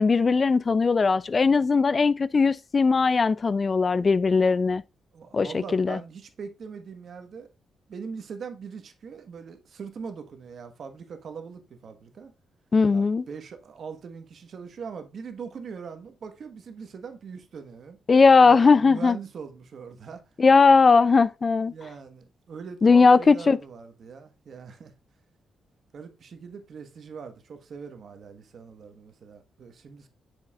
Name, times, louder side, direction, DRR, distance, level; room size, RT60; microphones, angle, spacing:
voice 1, 0.0-4.8 5.3-6.0 12.7-13.3 18.1-19.2 20.4-21.7 22.8-23.6, left 4 dB, 40° left, 0.4 m, -19 dB
voice 2, 5.1-7.5 7.9-12.3 12.9-18.0 18.4-20.2 21.7-24.9 25.9-30.1, right 6 dB, 65° right, 1.3 m, -41 dB
7.2 x 6.5 x 2.4 m
cardioid pair, 65°, 0 cm